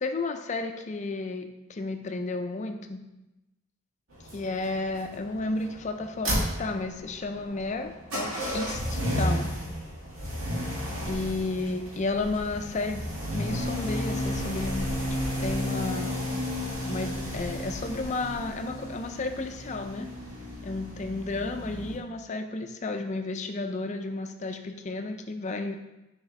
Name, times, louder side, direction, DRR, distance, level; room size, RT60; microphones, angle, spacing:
voice 1, 0.0-3.0 4.3-9.5 11.1-13.0 13.3-16.3 16.8-20.1 20.6-25.8, left 3 dB, 35° left, 6 dB, 0.4 m, -32 dB
sound 1, 4.1-22.0, equal, 80° right, 1.9 m, -33 dB
6.1 x 4.8 x 3.2 m, 0.97 s
head